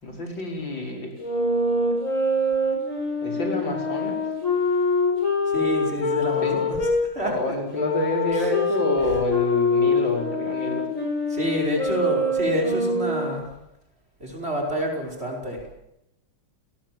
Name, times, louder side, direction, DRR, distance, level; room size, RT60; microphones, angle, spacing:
voice 1, 0.0-1.1 3.2-4.2 6.4-6.6 7.2-10.9, left 1 dB, 70° left, 2 dB, 5.8 m, -28 dB
sound 1, 1.2-7.0 7.7-13.4, left 2 dB, 40° left, 6.7 m, -24 dB
voice 2, 5.5-6.8 7.1-7.5 11.3-13.5 14.2-15.6, equal, 30° right, 2 dB, 5.5 m, -27 dB
30.0 x 19.0 x 7.7 m, 0.86 s
omnidirectional pair, 2.1 m